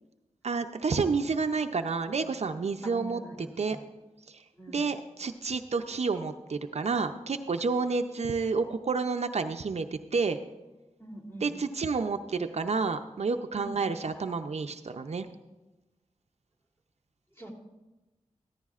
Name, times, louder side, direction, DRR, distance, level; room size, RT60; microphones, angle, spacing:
voice 1, 0.4-3.2 3.6-3.8 4.3-10.4 11.4-15.3, right 4 dB, 60° right, 8 dB, 0.5 m, -30 dB
voice 2, 2.8-3.8 4.6-4.8 11.0-11.6 13.5-13.8 17.3-17.5, equal, 20° left, -1 dB, 3.1 m, -43 dB
14.5 x 14.0 x 2.4 m, 1.1 s
wide cardioid pair, 60°, 12 cm